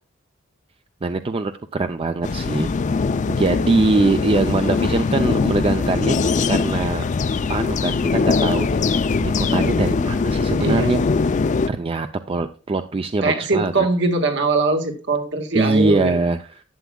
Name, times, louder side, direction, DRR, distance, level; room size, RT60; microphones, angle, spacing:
voice 1, 1.0-3.0 3.3-6.2 6.5-7.1 7.5-11.0 11.3-11.4 11.7-13.9 15.5-16.6, right 3 dB, 30° right, 8 dB, 0.4 m, -23 dB
sound 1, 2.2-11.7, left 4 dB, 40° left, 0.4 m, -21 dB
voice 2, 10.6-10.9 13.2-16.2, right 3 dB, 65° right, 4 dB, 1.6 m, -21 dB
11.5 x 8.2 x 2.3 m, 0.35 s
head